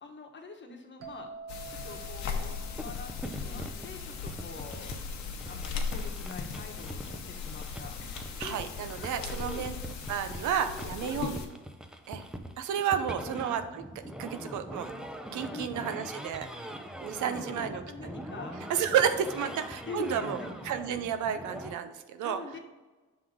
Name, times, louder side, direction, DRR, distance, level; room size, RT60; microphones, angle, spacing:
voice 1, 0.0-1.3 1.7-5.0 5.5-9.7 10.7-11.4 13.0-13.4 15.5-16.0 17.2-18.6 18.9-19.0 19.4-19.5 19.9-20.5 22.2-22.6, left 4 dB, 40° left, 2 dB, 1.1 m, -44 dB
sound 1, 1.0-4.6, right 5 dB, 50° right, 1.2 m, -49 dB
sound 2, 1.5-11.5, left 5 dB, 70° left, 1.0 m, -38 dB
sound 3, 2.8-21.7, equal, ahead, 0.5 m, -43 dB
voice 2, 8.4-9.8 10.1-11.3 12.1-12.3 12.6-14.9 15.3-16.7 17.0-17.8 18.7-20.4 20.6-22.4, right 8 dB, 75° right, 9 dB, 0.6 m, -31 dB
6.1 x 3.7 x 4.8 m, 1.2 s
cardioid pair, 90°, 30 cm